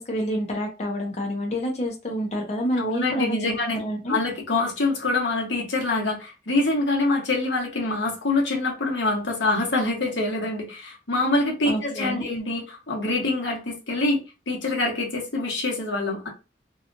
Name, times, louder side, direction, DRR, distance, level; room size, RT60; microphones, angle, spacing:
voice 1, 0.0-4.1 11.7-12.3, equal, 35° left, 0.6 m, -28 dB
voice 2, 2.8-16.3, left 2 dB, 85° left, 1.0 m, -25 dB
2.8 x 2.3 x 2.5 m
head